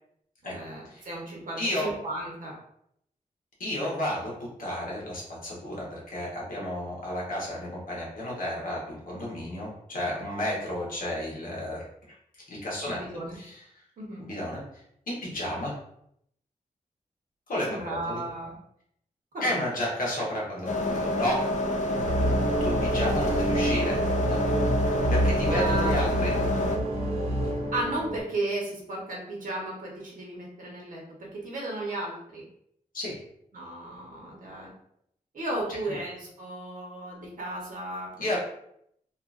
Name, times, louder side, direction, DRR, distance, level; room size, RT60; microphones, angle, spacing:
voice 1, 0.4-2.5 12.8-13.4 14.0-14.2 17.7-18.5 19.3-19.5 23.0-23.1 25.4-26.0 27.7-31.0 31.3-32.4 33.5-34.7 35.3-38.1, right 2 dB, 70° right, -3 dB, 0.9 m, -34 dB
voice 2, 1.6-1.9 3.6-11.8 12.5-13.0 13.3-13.6 14.2-14.6 15.1-15.7 17.5-18.2 19.4-21.5 22.6-24.0 24.3-24.4 25.1-26.3 32.9-33.2 35.9-36.0 38.2-38.4, left 1 dB, 80° left, -4 dB, 1.0 m, -32 dB
sound 1, 20.7-26.8, left 1 dB, 60° left, 0.4 m, -28 dB
sound 2, 22.0-28.2, right 1 dB, 45° right, 0.7 m, -27 dB
2.8 x 2.4 x 2.4 m, 0.72 s
wide cardioid pair, 145°, 14 cm